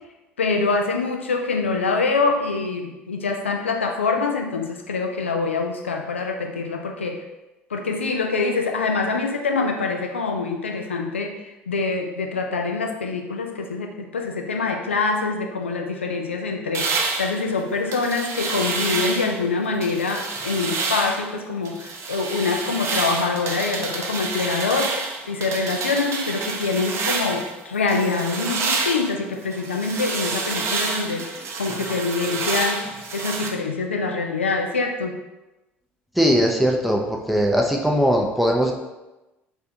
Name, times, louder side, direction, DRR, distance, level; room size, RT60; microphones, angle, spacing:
voice 1, 0.4-7.2 7.7-35.2, left 4 dB, 80° left, 3 dB, 0.4 m, -25 dB
sound 1, 16.7-19.4 19.8-21.3 21.6-27.5 27.9-33.5, right 4 dB, 45° right, 0.6 m, -28 dB
voice 2, 36.2-37.0 37.3-38.7, equal, ahead, 0 dB, 0.6 m, -19 dB
3.4 x 3.4 x 2.7 m, 1.0 s
figure-of-eight pair, 60°, 6 cm